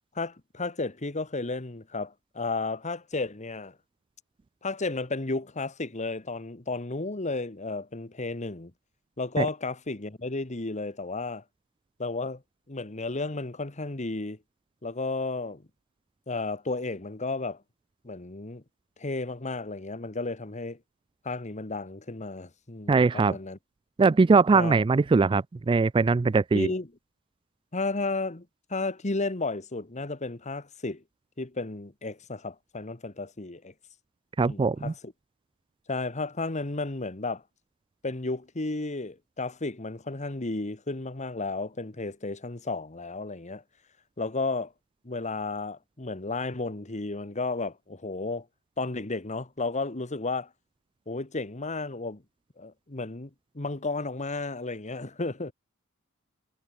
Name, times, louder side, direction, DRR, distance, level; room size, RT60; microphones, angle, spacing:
voice 1, 0.1-3.8 4.6-8.7 9.2-11.4 12.0-12.4 12.7-14.4 14.8-15.6 16.3-17.6 18.0-18.6 19.0-20.8 21.2-23.6 24.5-24.7 26.5-26.9 27.7-31.0 31.4-33.7 34.4-35.1 35.9-37.4 38.0-43.6 44.2-44.7 45.0-48.5 48.8-50.5 51.1-52.2 52.6-53.3 53.5-55.5, left 3 dB, 35° left, 1.5 m, -33 dB
voice 2, 22.9-23.4 24.0-26.7 34.4-34.9, right 4 dB, 25° right, 0.3 m, -21 dB
head